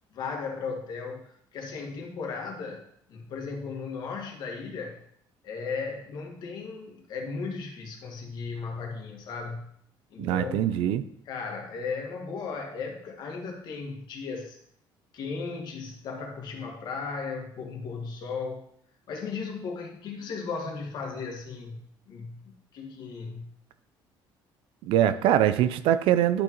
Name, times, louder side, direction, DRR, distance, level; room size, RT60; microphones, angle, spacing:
voice 1, 0.1-2.8 3.1-5.0 5.4-9.7 10.1-10.8 11.3-14.6 15.1-18.6 19.1-23.5, left 4 dB, 55° left, 2 dB, 1.8 m, -36 dB
voice 2, 10.2-11.0 24.9-26.4, right 11 dB, 80° right, 13 dB, 0.5 m, -23 dB
11.5 x 6.1 x 3.1 m, 0.67 s
cardioid pair, 150°, 9 cm